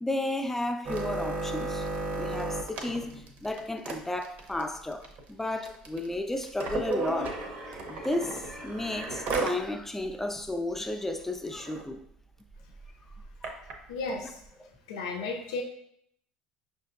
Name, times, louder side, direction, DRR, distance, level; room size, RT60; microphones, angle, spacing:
voice 1, 0.0-1.9 2.2-3.1 3.4-12.0 13.4-13.5 14.6-14.7, left 1 dB, 10° left, 0.4 m, -33 dB
sound 1, 0.8-9.6 10.0-10.1 10.4-10.7 11.2-11.3 11.5-11.8 12.5-13.7 14.5-14.6, right 3 dB, 55° right, 0.7 m, -34 dB
voice 2, 13.9-14.4 14.9-15.6, left 3 dB, 85° left, 0.4 m, -34 dB
5.5 x 2.6 x 2.5 m
supercardioid pair, 85°, 3 cm